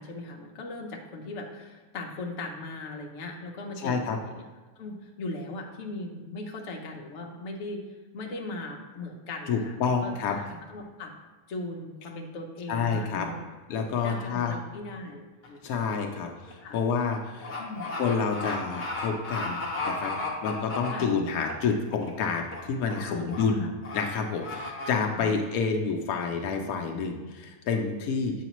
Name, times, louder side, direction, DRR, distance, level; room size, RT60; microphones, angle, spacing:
voice 1, 0.0-4.4 4.8-7.8 8.1-11.1 11.5-13.5 14.0-15.8 16.6-16.8 17.6-17.9 20.9-21.1 23.1-23.7 25.2-25.3, left 2 dB, 60° left, 1 dB, 1.1 m, -39 dB
voice 2, 3.8-4.2 9.5-10.4 12.7-13.3 13.7-14.5 15.6-17.6 18.0-19.6 19.8-28.3, left 5 dB, 80° left, 2 dB, 1.1 m, -29 dB
sound 1, 15.4-15.7 16.0-21.5 21.9-22.2 22.5-23.0 23.3-23.4 23.8-24.0 24.4-24.9, left 3 dB, 35° left, 1.0 m, -34 dB
7.8 x 4.8 x 3.0 m, 1.3 s
omnidirectional pair, 1.5 m